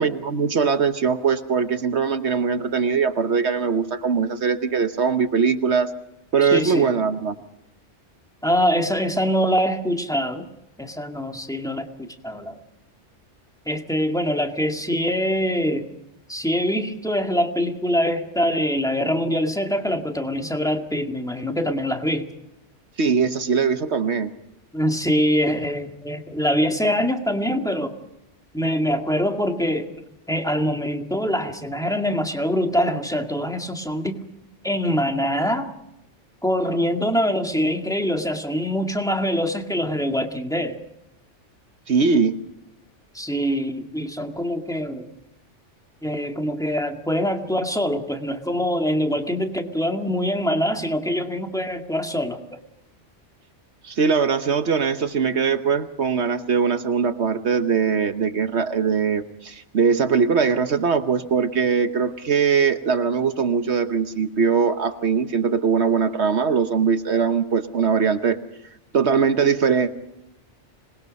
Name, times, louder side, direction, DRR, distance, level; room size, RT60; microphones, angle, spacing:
voice 1, 0.0-5.9 6.3-7.3 23.0-24.3 41.9-42.4 53.8-68.4 68.9-69.9, right 6 dB, 65° right, 9 dB, 1.3 m, -21 dB
voice 2, 6.4-6.9 8.4-10.5 10.8-12.6 13.7-15.9 16.3-22.3 24.7-27.9 28.5-29.9 30.3-34.2 34.6-35.7 36.4-40.8 43.1-45.1 46.0-52.4, equal, 5° left, 4 dB, 2.0 m, -24 dB
26.0 x 21.0 x 5.4 m, 0.86 s
omnidirectional pair, 1.2 m